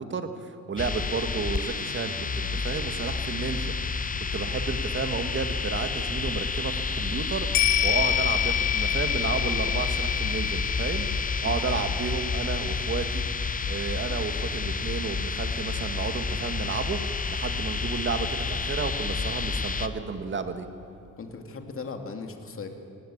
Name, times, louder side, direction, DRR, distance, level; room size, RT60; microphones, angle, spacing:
voice 1, 0.0-3.7 4.3-11.1 11.4-13.2 13.7-20.7, right 5 dB, 40° right, 8 dB, 1.9 m, -32 dB
sound 1, 0.8-19.9, left 4 dB, 25° left, 1.0 m, -30 dB
sound 2, 7.5-16.1 16.5-16.6, left 12 dB, 90° left, 1.0 m, -30 dB
voice 2, 21.2-22.7, left 4 dB, 45° left, 5 dB, 2.5 m, -38 dB
18.5 x 18.5 x 8.7 m, 2.6 s
cardioid pair, 90°, 30 cm